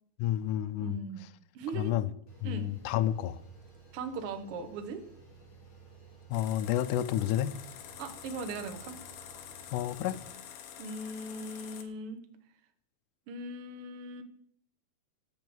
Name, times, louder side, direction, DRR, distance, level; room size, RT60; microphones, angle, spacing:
voice 1, 0.2-1.0 1.7-2.1 2.4-3.4 6.3-7.6 9.7-10.2, left 12 dB, 90° left, 12 dB, 1.8 m, -30 dB
voice 2, 0.8-1.2 1.5-2.0 2.4-2.7 3.9-5.0 8.0-8.9 10.8-12.2 13.3-14.2, right 3 dB, 80° right, 7 dB, 1.2 m, -39 dB
sound 1, 2.3-10.3, right 5 dB, 45° left, 3.5 m, -55 dB
sound 2, 6.3-11.8, left 9 dB, 70° left, 2.2 m, -47 dB
12.0 x 5.6 x 7.8 m, 0.65 s
omnidirectional pair, 4.4 m